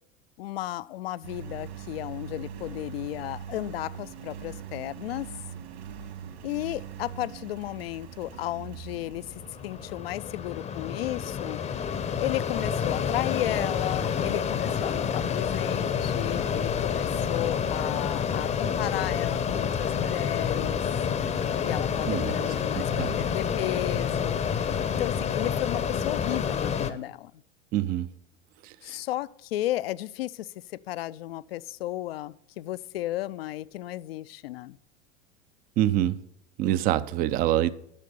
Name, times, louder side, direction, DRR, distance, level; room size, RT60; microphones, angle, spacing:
voice 1, 0.4-5.3 6.4-9.3 9.6-11.6 12.2-20.8 21.7-24.4 24.9-27.3 28.8-34.8, left 15 dB, 55° left, 0.5 m, -34 dB
Engine, 1.2-10.7, right 8 dB, 60° right, 2.0 m, -42 dB
Mechanisms, 8.9-26.9, left 7 dB, 20° left, 0.7 m, -28 dB
voice 2, 22.1-22.4 22.7-23.2 27.7-28.1 28.6-29.0 35.8-36.2 36.6-37.7, right 13 dB, 25° right, 0.4 m, -26 dB
11.5 x 6.5 x 6.7 m
figure-of-eight pair, 90°, 37 cm